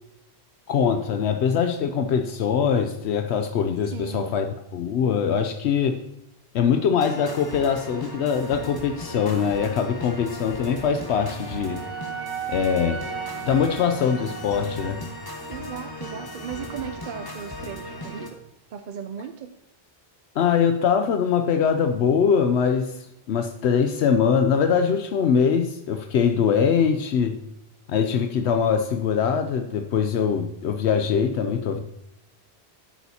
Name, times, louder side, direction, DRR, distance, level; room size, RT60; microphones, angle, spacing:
voice 1, 0.7-6.0 6.5-11.8 12.5-13.0 13.5-15.0 20.4-27.4 27.9-31.8, left 7 dB, 80° left, 7 dB, 0.9 m, -22 dB
voice 2, 3.9-4.4 15.5-18.4 18.7-19.6, right 8 dB, 60° right, 9 dB, 0.6 m, -37 dB
sound 1, 7.0-18.3, left 1 dB, 20° left, 1.3 m, -37 dB
Wind instrument woodwind instrument, 10.8-15.0, right 8 dB, 85° right, 1.5 m, -36 dB
11.5 x 8.3 x 2.8 m, 0.85 s
omnidirectional pair, 1.1 m